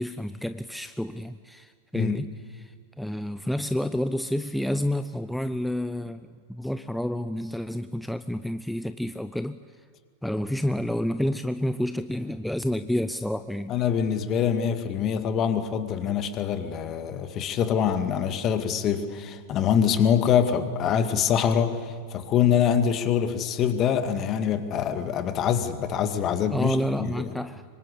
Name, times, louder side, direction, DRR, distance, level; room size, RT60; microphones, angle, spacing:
voice 1, 0.0-9.6 10.2-13.7 26.5-27.6, left 1 dB, ahead, 0.6 m, -29 dB
voice 2, 13.7-27.3, left 8 dB, 30° left, 2.0 m, -24 dB
26.0 x 24.5 x 8.4 m
figure-of-eight pair, 90°, 0 cm